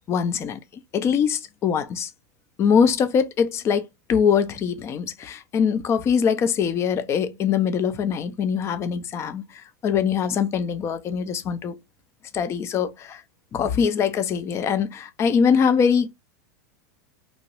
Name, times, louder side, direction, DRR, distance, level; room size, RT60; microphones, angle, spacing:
voice 1, 0.1-0.6 0.9-2.1 2.6-11.8 12.3-13.2 13.5-16.1, left 7 dB, 30° left, 0.4 m, -23 dB
3.0 x 2.2 x 2.9 m
supercardioid pair, 125°, 9 cm